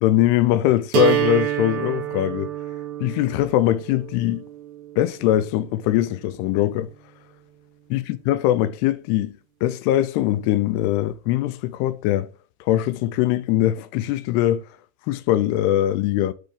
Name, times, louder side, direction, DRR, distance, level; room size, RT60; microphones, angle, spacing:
voice 1, 0.0-2.5 3.0-4.4 5.0-6.9 7.9-9.4 9.6-12.3 12.7-14.7 15.1-16.3, left 13 dB, 85° left, 2.6 m, -21 dB
sound 1, 0.9-6.9, right 12 dB, 75° right, 2.5 m, -28 dB
7.7 x 4.2 x 3.3 m
omnidirectional pair, 4.8 m